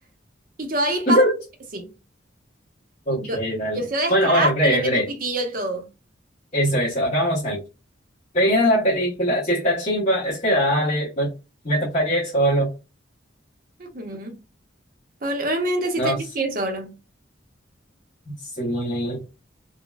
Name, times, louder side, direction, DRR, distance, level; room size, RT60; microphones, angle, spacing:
voice 1, 0.6-1.2 1.7-1.9 3.2-3.4 3.7-4.9 5.2-5.9 13.8-14.4 15.2-16.9, right 1 dB, 45° right, 0.8 m, -25 dB
voice 2, 3.1-3.8 4.1-5.1 6.5-7.6 8.3-11.3 11.6-12.7 16.0-16.2 18.3-19.3, equal, 35° left, 1.1 m, -21 dB
3.8 x 2.2 x 2.3 m
head